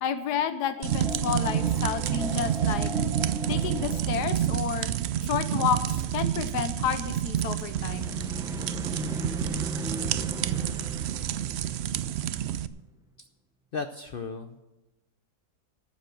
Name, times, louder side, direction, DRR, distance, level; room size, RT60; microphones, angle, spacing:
voice 1, 0.0-2.9 3.5-4.9 5.3-8.0, left 8 dB, 85° left, 11 dB, 1.3 m, -30 dB
sound 1, 0.7-5.0 7.6-12.6, equal, 5° right, 0.4 m, -38 dB
sound 2, 0.8-12.7, right 11 dB, 85° right, 0.5 m, -29 dB
voice 2, 13.7-14.6, left 4 dB, 60° left, 8 dB, 0.6 m, -35 dB
12.5 x 7.4 x 7.8 m, 1.0 s
omnidirectional pair, 1.7 m